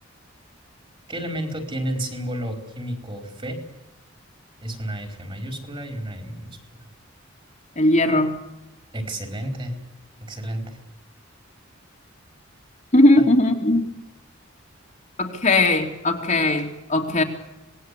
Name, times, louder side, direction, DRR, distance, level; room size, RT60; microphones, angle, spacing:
voice 1, 1.1-3.6 4.6-6.8 8.9-9.8 10.2-10.8 13.2-13.3, right 1 dB, 25° right, 5 dB, 4.4 m, -31 dB
voice 2, 7.8-8.4 12.9-13.8 15.2-17.2, left 1 dB, 35° left, 1 dB, 2.9 m, -18 dB
26.0 x 20.0 x 8.4 m, 0.97 s
head